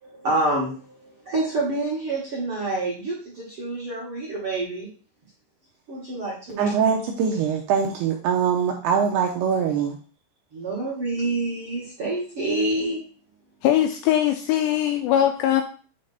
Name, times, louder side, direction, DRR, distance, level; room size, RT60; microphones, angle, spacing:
voice 1, 0.0-4.9 5.9-6.7 10.5-13.0, right 2 dB, 55° right, -6 dB, 1.6 m, -27 dB
voice 2, 6.6-10.0, right 6 dB, 80° right, 1 dB, 2.4 m, -23 dB
voice 3, 13.6-15.6, left 11 dB, 85° left, 6 dB, 2.5 m, -21 dB
8.5 x 3.4 x 4.1 m, 0.40 s
omnidirectional pair, 5.3 m